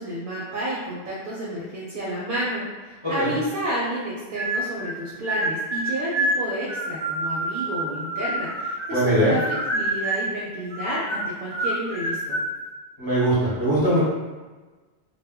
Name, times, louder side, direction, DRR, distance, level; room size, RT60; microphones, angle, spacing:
voice 1, 0.0-9.4 9.7-12.4, right 1 dB, 60° right, -6 dB, 0.7 m, -30 dB
sound 1, 4.3-4.9 5.2-9.1 9.4-10.3 10.7-12.5, right 1 dB, 10° right, 0.6 m, -27 dB
voice 2, 8.9-9.3 13.0-14.0, right 1 dB, 30° left, -11 dB, 0.7 m, -21 dB
2.1 x 2.1 x 3.4 m, 1.3 s
omnidirectional pair, 1.1 m